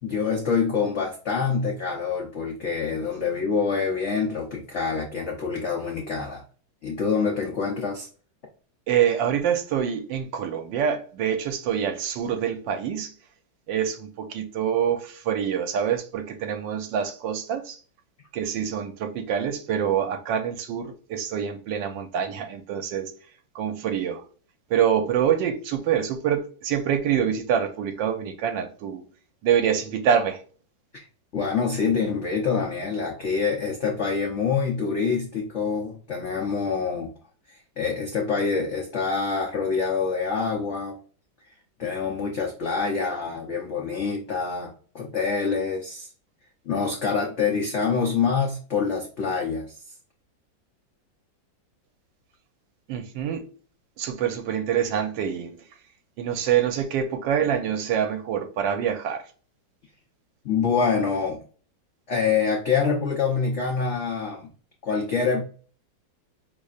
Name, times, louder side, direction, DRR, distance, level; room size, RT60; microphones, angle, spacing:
voice 1, 0.0-6.4 6.8-8.1 30.9-31.1 31.3-37.1 37.5-41.0 41.4-41.5 41.8-46.1 46.6-49.8 60.4-61.4 62.1-64.5 64.8-65.4, left 5 dB, 75° left, 0.6 m, -26 dB
voice 2, 8.9-13.1 13.7-17.8 18.3-23.1 23.5-24.2 24.7-29.0 29.4-30.4 52.9-53.5 54.0-55.6 56.2-59.2, right 8 dB, 75° right, 1.3 m, -26 dB
5.3 x 3.3 x 2.4 m
omnidirectional pair, 2.1 m